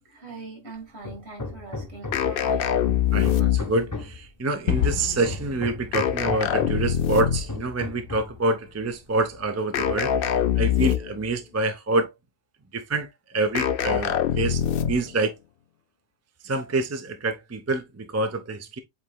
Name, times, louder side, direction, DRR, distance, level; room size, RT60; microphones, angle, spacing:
voice 1, 0.1-2.9, right 3 dB, 60° right, 2.4 m, -42 dB
Hammer, 1.0-2.4 2.9-4.3 4.9-6.9 7.5-8.4, left 2 dB, 20° left, 0.6 m, -36 dB
sound 1, 2.1-3.9 5.9-7.6 9.7-11.3 13.5-15.1, left 9 dB, 60° left, 0.6 m, -24 dB
voice 2, 3.1-10.1 10.6-12.1 12.7-15.3 16.4-18.8, right 2 dB, 20° right, 0.4 m, -27 dB
Gunshot gunfire / Fireworks / Boom, 4.7-9.5, left 9 dB, 85° left, 1.2 m, -32 dB
7.8 x 3.0 x 2.2 m
omnidirectional pair, 1.3 m